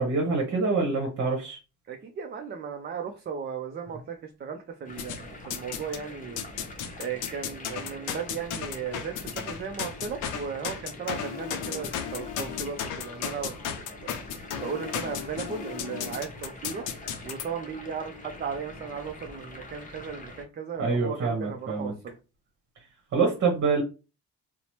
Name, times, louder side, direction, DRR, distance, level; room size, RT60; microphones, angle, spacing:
voice 1, 0.0-1.6 20.8-21.9 23.1-23.8, right 4 dB, 55° right, 1 dB, 0.9 m, -26 dB
voice 2, 1.9-6.4 7.0-13.6 14.0-14.1 14.6-16.9 17.2-22.2, right 6 dB, 35° right, 4 dB, 0.4 m, -36 dB
sound 1, 4.9-20.5, left 2 dB, 25° left, 0.7 m, -44 dB
sound 2, 5.0-6.0 6.4-17.5, left 8 dB, 90° left, 0.5 m, -35 dB
2.8 x 2.0 x 2.9 m, 0.31 s
cardioid pair, 90°, 30 cm